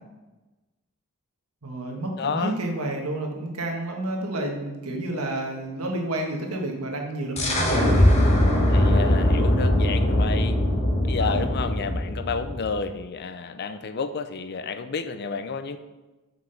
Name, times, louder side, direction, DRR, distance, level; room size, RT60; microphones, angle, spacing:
voice 1, 1.6-8.1 11.2-11.4, right 1 dB, 80° right, 1 dB, 1.5 m, -30 dB
voice 2, 2.2-2.6 8.7-10.6 11.0-15.8, left 5 dB, 45° left, 10 dB, 0.5 m, -30 dB
sound 1, 7.4-12.9, left 1 dB, 30° left, 1.2 m, -21 dB
5.9 x 5.5 x 5.7 m, 1.1 s
head